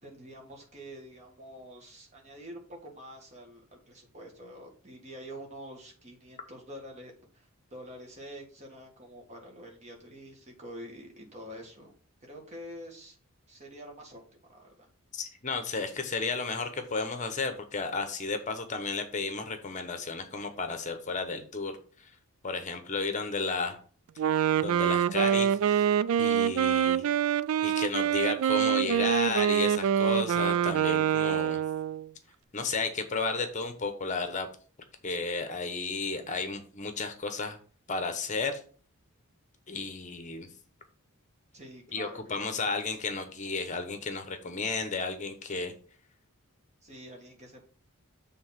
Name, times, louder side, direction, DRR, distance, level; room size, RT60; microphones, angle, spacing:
voice 1, 0.0-11.9 12.2-13.2 13.5-14.9 41.5-42.5 46.8-47.7, equal, 30° right, 0 dB, 1.8 m, -47 dB
voice 2, 15.1-22.1 22.4-23.8 24.6-25.9 26.2-27.0 27.6-31.6 32.5-34.5 35.0-37.6 37.9-38.6 39.7-40.5 41.9-45.7, left 4 dB, 35° left, 7 dB, 0.9 m, -33 dB
Wind instrument woodwind instrument, 24.2-32.1, right 9 dB, 70° right, 0.3 m, -25 dB
7.0 x 3.6 x 5.8 m, 0.42 s
head